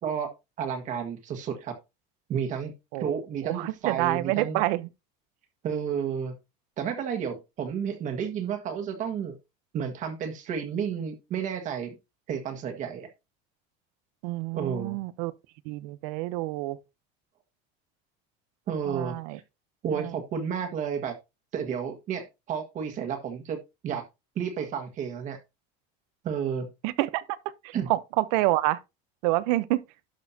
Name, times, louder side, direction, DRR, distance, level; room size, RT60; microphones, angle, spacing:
voice 1, 0.6-1.8 2.3-2.7 3.0-4.6 5.6-6.3 6.8-9.4 9.7-12.0 12.3-13.1 14.5-15.0 18.7-19.2 19.8-21.1 21.5-24.0 24.3-25.4 26.2-26.7 27.7-27.9, right 7 dB, 35° right, 1.6 m, -31 dB
voice 2, 3.4-4.9 14.2-15.3 15.6-16.8 18.9-19.4 19.9-20.2 26.8-28.8 29.2-29.8, right 18 dB, 80° right, 0.8 m, -28 dB
11.5 x 6.4 x 2.8 m
cardioid pair, 165°, 21 cm